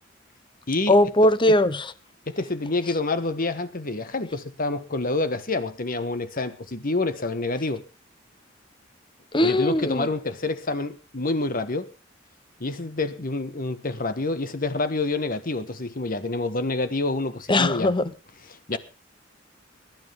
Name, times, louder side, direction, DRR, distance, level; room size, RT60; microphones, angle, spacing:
voice 1, 0.9-1.8 9.3-10.1 17.5-18.0, left 1 dB, 25° left, 0.9 m, -19 dB
voice 2, 2.3-7.8 9.4-11.9 12.6-17.9 18.4-18.8, left 2 dB, 45° left, 1.5 m, -27 dB
22.0 x 12.0 x 3.7 m
head